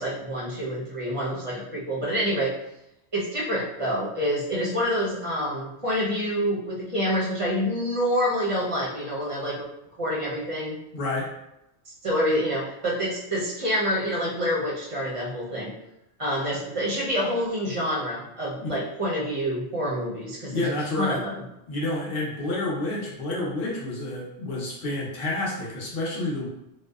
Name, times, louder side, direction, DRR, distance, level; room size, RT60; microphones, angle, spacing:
voice 1, 0.0-2.5 3.1-9.7 10.0-10.8 12.0-15.7 16.2-20.7 21.0-21.4, equal, 35° right, -6 dB, 0.7 m, -27 dB
voice 2, 10.9-11.3 18.6-18.7 20.5-21.2 21.7-26.5, left 2 dB, 55° left, -4 dB, 0.9 m, -29 dB
2.6 x 2.2 x 2.3 m, 0.85 s
omnidirectional pair, 1.2 m